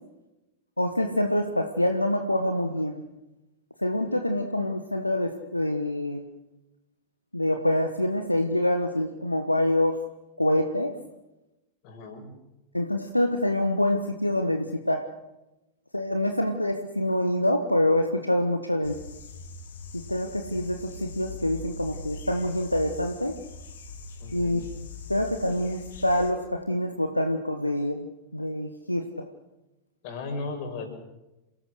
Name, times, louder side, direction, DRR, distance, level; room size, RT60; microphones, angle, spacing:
voice 1, 0.8-3.0 3.8-6.2 7.3-10.0 10.4-10.9 12.7-15.0 15.9-19.0 20.1-23.3 24.3-28.1 28.3-29.3, left 1 dB, 85° left, 6 dB, 1.4 m, -26 dB
voice 2, 11.8-12.3 24.2-24.6 30.0-30.9, left 3 dB, 45° left, 4 dB, 6.5 m, -36 dB
sound 1, 18.8-26.3, left 3 dB, 60° left, 2.6 m, -42 dB
28.0 x 18.0 x 6.5 m, 0.98 s
figure-of-eight pair, 90°, 0 cm